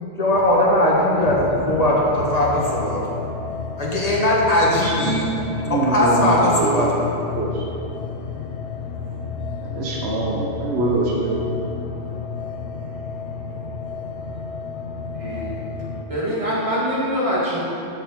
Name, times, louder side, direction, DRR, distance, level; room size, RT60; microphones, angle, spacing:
voice 1, 0.2-3.3 3.8-7.2, left 1 dB, 35° left, -4 dB, 1.6 m, -19 dB
sound 1, 2.2-16.0, left 5 dB, 70° left, 0.9 m, -31 dB
voice 2, 4.7-6.9 7.3-7.6 9.7-11.5, right 2 dB, 65° right, -2 dB, 1.2 m, -24 dB
voice 3, 15.1-15.6 16.1-17.6, equal, 30° right, -7 dB, 2.1 m, -24 dB
6.9 x 5.6 x 7.2 m, 2.7 s
omnidirectional pair, 1.2 m